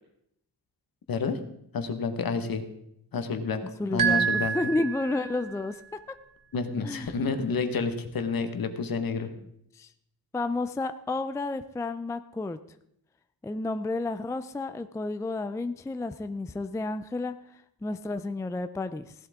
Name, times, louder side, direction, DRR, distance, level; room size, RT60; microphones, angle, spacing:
voice 1, 1.1-1.4 1.7-2.6 3.1-3.6 3.9-4.5 6.5-9.3, left 4 dB, 65° left, 8 dB, 1.4 m, -29 dB
voice 2, 3.8-5.8 6.8-7.1 9.1-9.2 9.7-9.9 10.3-12.6 13.4-19.1, left 2 dB, 10° left, 10 dB, 0.4 m, -31 dB
sound 1, 4.0-5.5, right 7 dB, 60° right, 1.4 m, -27 dB
16.5 x 11.5 x 3.6 m, 0.74 s
wide cardioid pair, 150°, 38 cm